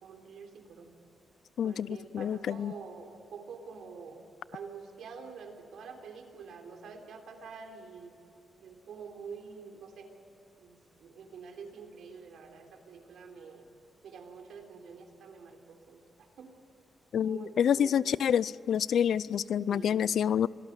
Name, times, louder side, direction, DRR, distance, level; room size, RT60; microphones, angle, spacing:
voice 1, 0.0-0.9 1.6-4.2 4.5-8.1 8.6-10.1 10.6-13.7 14.0-16.5 17.2-18.0 19.7-20.2, right 5 dB, 80° right, 4 dB, 3.5 m, -47 dB
voice 2, 1.6-2.7 17.1-20.5, left 8 dB, 65° left, 20 dB, 0.4 m, -28 dB
26.0 x 18.0 x 8.3 m, 2.7 s
wide cardioid pair, 165°, 0 cm